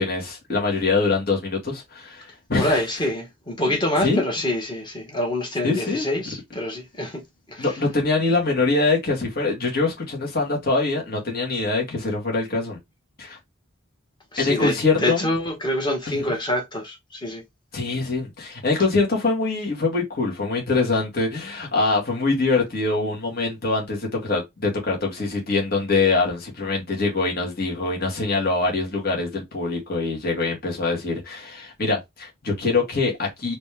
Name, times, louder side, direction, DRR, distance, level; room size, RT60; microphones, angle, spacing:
voice 1, 0.0-2.8 4.0-4.2 5.6-6.1 7.6-12.8 13.2-13.4 14.4-15.3 16.1-16.3 17.7-33.6, left 3 dB, 50° left, 2.0 m, -24 dB
voice 2, 2.6-7.2 7.5-7.7 14.3-17.4, left 1 dB, 20° left, 1.5 m, -26 dB
4.2 x 3.1 x 3.5 m
head